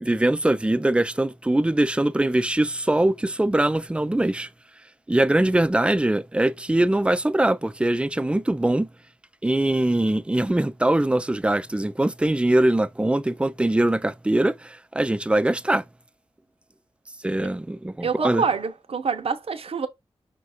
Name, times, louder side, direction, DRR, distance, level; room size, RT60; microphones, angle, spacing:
voice 1, 0.0-4.5 5.1-8.9 9.4-15.8 17.2-18.4, right 1 dB, 10° right, 0.4 m, -22 dB
voice 2, 18.0-19.9, right 5 dB, 65° right, 0.7 m, -26 dB
5.1 x 2.4 x 4.1 m
wide cardioid pair, 80°, 11 cm